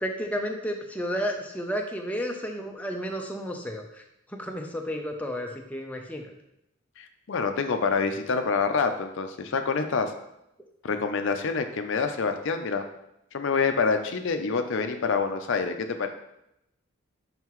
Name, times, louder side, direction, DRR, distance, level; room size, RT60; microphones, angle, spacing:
voice 1, 0.0-4.0 4.3-6.3, equal, 5° left, 1 dB, 0.5 m, -32 dB
voice 2, 7.0-10.1 10.8-12.8 13.3-16.1, left 5 dB, 60° left, 7 dB, 0.5 m, -27 dB
5.7 x 5.5 x 3.1 m, 0.83 s
head